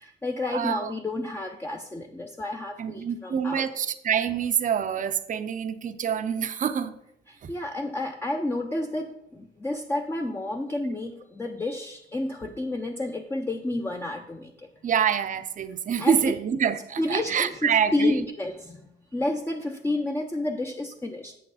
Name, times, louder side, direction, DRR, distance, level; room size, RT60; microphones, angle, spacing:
voice 1, 0.0-3.7 7.3-14.5 16.0-16.3 17.0-21.4, left 2 dB, 10° left, 2 dB, 0.6 m, -30 dB
voice 2, 0.5-0.9 2.8-7.0 7.4-7.5 14.8-18.1, right 8 dB, 40° right, 11 dB, 0.6 m, -26 dB
7.8 x 6.7 x 4.1 m, 0.78 s
cardioid pair, 90°, 20 cm